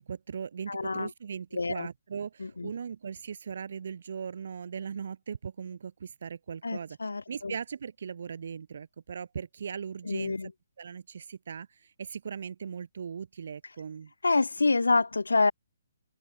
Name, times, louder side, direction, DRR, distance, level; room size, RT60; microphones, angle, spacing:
voice 1, 0.0-10.3 10.8-14.1, right 6 dB, 60° right, 2.4 m, -39 dB
voice 2, 0.7-1.1 1.5-1.9 2.4-2.7 6.6-7.5 10.1-10.5 14.2-15.5, left 3 dB, 80° left, 0.6 m, -27 dB
figure-of-eight pair, 135°, 0 cm